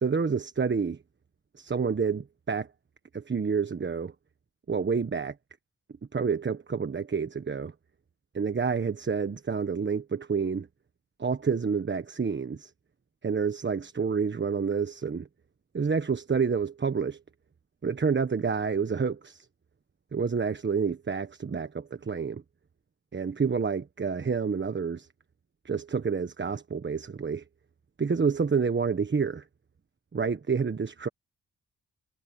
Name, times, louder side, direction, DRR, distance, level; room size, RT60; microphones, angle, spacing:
voice 1, 0.0-1.0 1.6-2.7 3.1-4.1 4.7-5.3 6.1-7.7 8.3-10.7 11.2-12.7 13.2-15.3 15.7-17.2 17.8-19.5 20.1-22.4 23.1-25.1 25.6-27.4 28.0-29.4 30.1-31.1, right 5 dB, 35° right, 1.3 m, -28 dB
cardioid pair, 65°, 31 cm